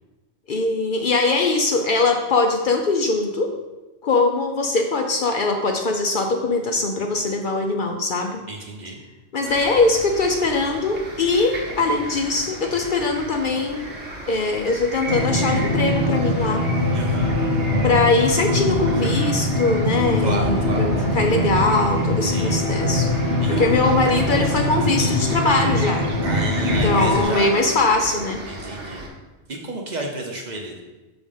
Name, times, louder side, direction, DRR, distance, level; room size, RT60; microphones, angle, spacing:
voice 1, 0.5-3.5 4.0-8.4 9.3-13.9 14.3-16.7 17.8-23.1 23.5-26.1 26.8-28.4, left 3 dB, 55° left, 3 dB, 0.7 m, -21 dB
voice 2, 8.5-9.0 16.9-17.3 20.2-20.9 22.2-22.5 23.4-23.7 26.2-27.5 28.5-29.0 29.5-30.8, right 2 dB, 45° right, 1 dB, 0.8 m, -31 dB
sound 1, 9.4-29.1, right 1 dB, 85° right, 1.7 m, -35 dB
sound 2, 15.1-27.2, left 1 dB, 65° right, 1.4 m, -22 dB
6.2 x 3.5 x 5.4 m, 1.1 s
omnidirectional pair, 1.1 m